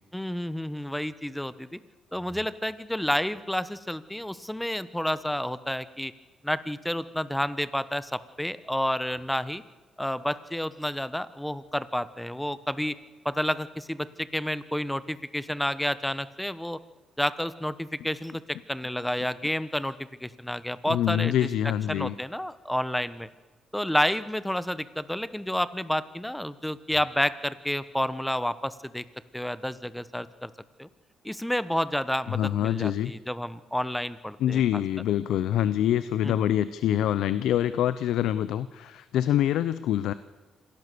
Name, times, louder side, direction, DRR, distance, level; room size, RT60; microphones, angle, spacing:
voice 1, 0.1-1.8 2.1-6.1 6.4-9.6 10.0-13.0 13.2-16.8 17.2-21.5 21.9-23.3 23.7-29.0 29.3-30.5 30.8-30.9 31.2-34.8 36.2-36.5, left 1 dB, 5° left, 15 dB, 1.2 m, -30 dB
voice 2, 20.9-22.1 32.3-33.1 34.4-40.1, left 11 dB, 85° left, 15 dB, 0.8 m, -25 dB
26.5 x 18.0 x 6.9 m, 1.3 s
cardioid pair, 90°, 0 cm